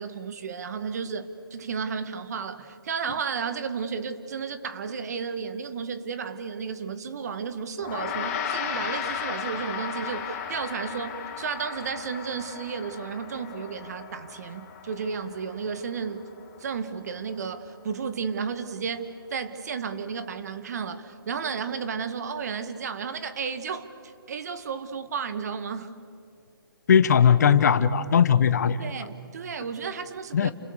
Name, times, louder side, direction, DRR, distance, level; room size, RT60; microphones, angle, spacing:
voice 1, 0.0-16.2 16.6-25.9 28.8-30.5, right 6 dB, 45° right, 11 dB, 1.8 m, -33 dB
Gong, 7.8-17.3, left 7 dB, 25° left, 4.5 m, -35 dB
voice 2, 26.9-28.8 30.3-30.5, left 7 dB, 50° left, 14 dB, 1.2 m, -19 dB
29.5 x 27.5 x 6.7 m, 2.6 s
hypercardioid pair, 155°, 12 cm